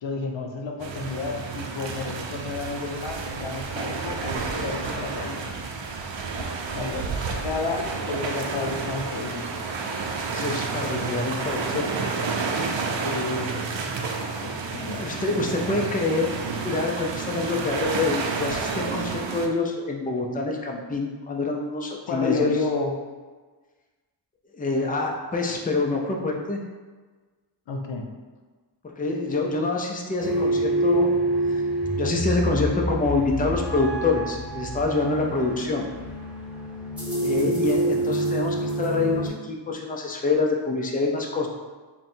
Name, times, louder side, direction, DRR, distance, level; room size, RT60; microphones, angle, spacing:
voice 1, 0.0-5.6 6.3-7.1 7.4-9.7 13.0-13.7 14.4-15.1 22.1-23.0 27.7-28.1 37.4-37.6, left 4 dB, 85° left, 2 dB, 0.6 m, -31 dB
sound 1, 0.8-19.5, right 4 dB, 85° right, 0.6 m, -30 dB
voice 2, 10.2-11.9 15.0-16.3 16.6-22.5 24.5-26.6 29.0-31.1 31.5-31.6 31.9-35.9 37.2-41.5, left 3 dB, 20° left, 0 dB, 0.5 m, -26 dB
sound 2, 30.2-39.3, right 1 dB, 5° right, 1.0 m, -27 dB
3.6 x 2.2 x 4.3 m, 1.3 s
wide cardioid pair, 85°, 44 cm